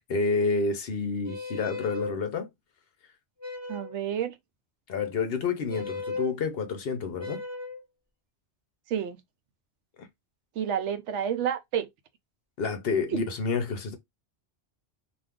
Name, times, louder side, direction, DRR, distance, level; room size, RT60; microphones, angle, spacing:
voice 1, 0.1-2.5 4.9-7.4 12.6-14.0, left 4 dB, 60° left, 0.8 m, -29 dB
sound 1, 1.2-2.2 3.4-4.0 5.7-6.3 7.2-7.8, left 3 dB, 10° right, 0.9 m, -36 dB
voice 2, 3.7-4.3 8.9-9.2 10.6-11.9 13.1-13.2, right 8 dB, 85° right, 0.9 m, -29 dB
2.5 x 2.4 x 3.4 m
omnidirectional pair, 1.2 m